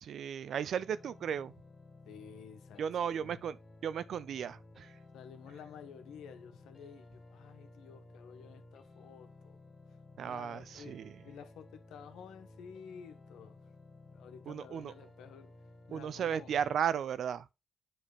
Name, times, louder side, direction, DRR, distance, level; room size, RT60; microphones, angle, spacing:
voice 1, 0.0-1.5 2.8-3.6 3.8-4.9 10.2-11.2 14.5-14.9 15.9-17.5, right 8 dB, 70° right, 0.5 m, -35 dB
sound 1, 0.7-16.7, left 2 dB, 35° left, 2.0 m, -56 dB
voice 2, 2.0-3.4 5.1-9.6 10.2-10.9 11.2-13.6 14.1-15.5 15.9-16.5, left 7 dB, 85° left, 1.3 m, -52 dB
7.8 x 3.4 x 4.8 m
cardioid pair, 80°, 0 cm